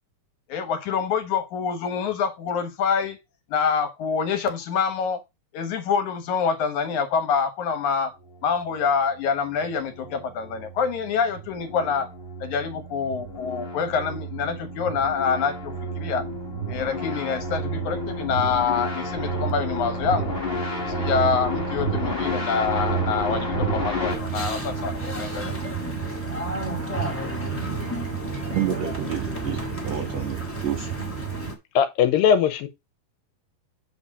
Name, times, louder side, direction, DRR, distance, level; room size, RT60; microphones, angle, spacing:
voice 1, 0.5-3.2 3.5-5.2 5.5-8.1 8.4-12.1 12.4-16.2 16.7-20.4 21.0-25.5, left 6 dB, 65° left, 2.4 m, -26 dB
sound 1, 9.6-24.2, right 1 dB, 30° left, 1.1 m, -30 dB
sound 2, 24.1-31.5, right 3 dB, 5° left, 1.1 m, -30 dB
voice 2, 28.5-29.6 29.8-30.9, right 10 dB, 70° right, 1.6 m, -29 dB
voice 3, 31.8-32.7, left 8 dB, 80° left, 2.6 m, -19 dB
8.0 x 4.2 x 4.8 m
omnidirectional pair, 4.1 m